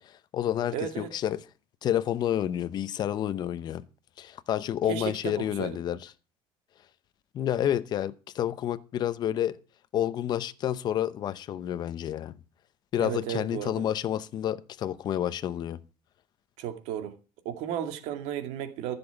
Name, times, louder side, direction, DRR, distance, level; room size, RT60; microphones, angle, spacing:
voice 1, 0.0-1.4 1.8-3.8 4.2-6.0 7.3-9.6 9.9-12.4 12.9-15.8, left 11 dB, 35° left, 0.7 m, -29 dB
voice 2, 0.7-1.1 4.9-5.8 13.0-13.8 16.6-17.1 17.4-18.9, right 10 dB, 75° right, 2.3 m, -34 dB
14.5 x 7.0 x 7.0 m
cardioid pair, 160°, 12 cm